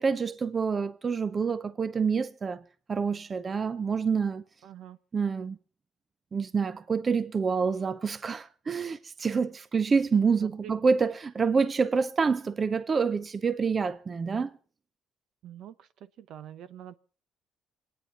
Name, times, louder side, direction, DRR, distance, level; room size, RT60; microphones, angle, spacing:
voice 1, 0.0-2.6 2.9-4.4 5.1-5.6 6.3-14.5, right 5 dB, 35° right, 0.7 m, -27 dB
voice 2, 4.6-5.0 10.4-10.8 15.4-15.9 16.2-17.0, right 10 dB, 70° right, 0.9 m, -45 dB
26.0 x 9.3 x 5.6 m
cardioid pair, 100°, 0 cm